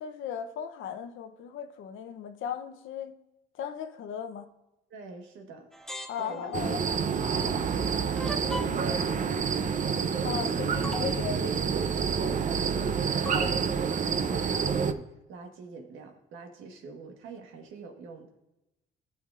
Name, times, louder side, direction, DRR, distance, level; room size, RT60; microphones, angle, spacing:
voice 1, 0.0-3.1 3.6-4.5 6.1-6.9 10.2-11.7, left 8 dB, 80° left, 8 dB, 0.8 m, -36 dB
voice 2, 4.9-5.7 6.2-6.6 7.0-9.5 10.5-10.7 12.2-18.3, right 3 dB, 85° right, 4 dB, 1.4 m, -45 dB
sound 1, 5.7-6.7 8.2-9.0 10.3-10.4 10.8-11.2 13.3-13.6, left 1 dB, ahead, 0.8 m, -38 dB
sound 2, 6.5-14.9, right 6 dB, 40° right, 0.6 m, -28 dB
13.5 x 5.8 x 2.5 m, 0.95 s
cardioid pair, 90°, 20 cm